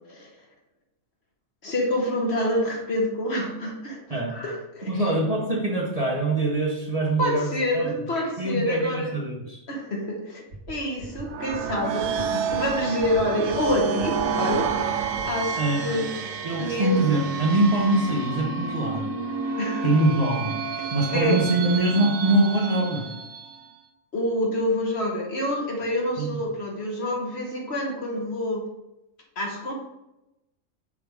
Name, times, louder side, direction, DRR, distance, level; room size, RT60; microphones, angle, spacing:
voice 1, 1.6-5.1 7.2-9.1 9.7-16.1 16.6-17.0 19.6-19.9 21.1-21.4 24.1-28.7 29.4-29.7, left 1 dB, 55° left, -1 dB, 1.5 m, -27 dB
voice 2, 4.8-7.9 8.4-9.6 15.6-15.8 16.4-19.2 19.8-20.6 20.9-23.1 26.2-26.4, right 2 dB, 30° right, -2 dB, 0.9 m, -24 dB
sound 1, 10.5-10.7 11.0-11.2 11.5-11.7 12.0-12.2 12.5-12.7 13.0-13.2 13.5-13.7 14.0-14.2 14.5-14.7 15.0-15.2, right 2 dB, 65° right, 1.4 m, -39 dB
sound 2, 11.2-23.7, right 6 dB, 90° right, 1.0 m, -30 dB
6.3 x 4.6 x 3.5 m, 0.91 s
omnidirectional pair, 1.4 m